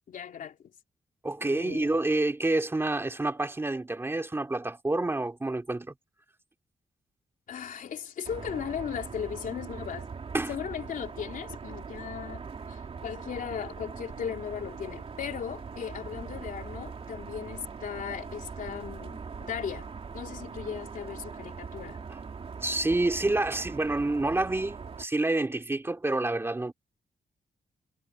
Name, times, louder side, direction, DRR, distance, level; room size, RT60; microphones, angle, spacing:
voice 1, 0.1-0.6 1.4-1.9 7.5-10.1 10.5-19.9 20.1-22.0, left 8 dB, 70° left, 3.2 m, -37 dB
voice 2, 1.2-5.9 10.3-10.5 22.6-26.7, right 2 dB, 15° right, 2.8 m, -28 dB
sound 1, 8.2-25.1, right 5 dB, 45° right, 3.1 m, -41 dB
wide cardioid pair, 135°, 14 cm